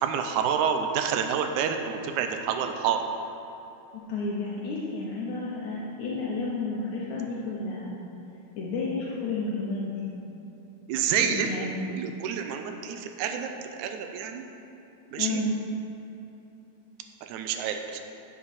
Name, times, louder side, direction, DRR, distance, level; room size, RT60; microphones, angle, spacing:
voice 1, 0.0-3.0 10.9-11.5 11.9-14.4 15.1-15.4 17.2-18.0, right 7 dB, 90° right, 6 dB, 2.1 m, -28 dB
voice 2, 3.9-7.9 8.6-9.9 11.2-11.8 15.2-15.5, left 2 dB, 75° left, -5 dB, 2.3 m, -31 dB
11.0 x 7.2 x 4.2 m, 2.9 s
omnidirectional pair, 3.4 m